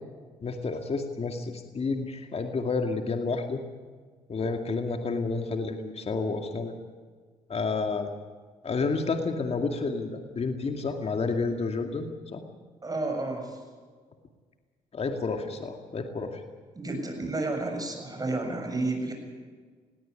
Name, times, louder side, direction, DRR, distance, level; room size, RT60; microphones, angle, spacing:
voice 1, 0.4-3.6 4.3-6.7 7.5-8.1 8.6-12.4 14.9-16.4, left 4 dB, 45° left, 5 dB, 2.3 m, -30 dB
voice 2, 12.8-13.6 16.7-19.1, right 2 dB, 25° right, 4 dB, 7.3 m, -31 dB
19.5 x 17.0 x 9.8 m, 1.6 s
supercardioid pair, 65°, 15 cm